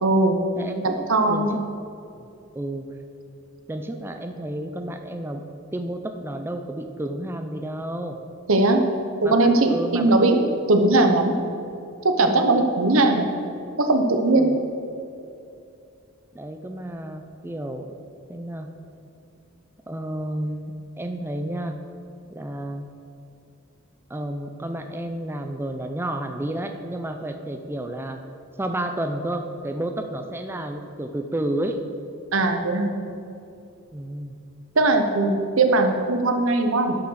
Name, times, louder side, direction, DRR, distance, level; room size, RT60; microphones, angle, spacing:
voice 1, 0.0-0.4 0.8-1.6 8.5-8.8 9.2-10.4 10.7-11.3 12.0-13.3 13.8-14.5 32.3-32.9 34.7-37.0, right 2 dB, 75° right, 5 dB, 1.0 m, -19 dB
voice 2, 0.6-1.5 2.2-2.3 2.5-2.9 3.7-5.4 5.7-8.2 9.2-10.2 14.3-14.6 16.3-17.9 18.3-18.7 19.9-21.8 22.3-22.9 24.1-28.2 28.6-31.8 33.9-34.4, right 1 dB, 10° right, 6 dB, 0.5 m, -31 dB
11.5 x 5.9 x 6.3 m, 2.6 s
head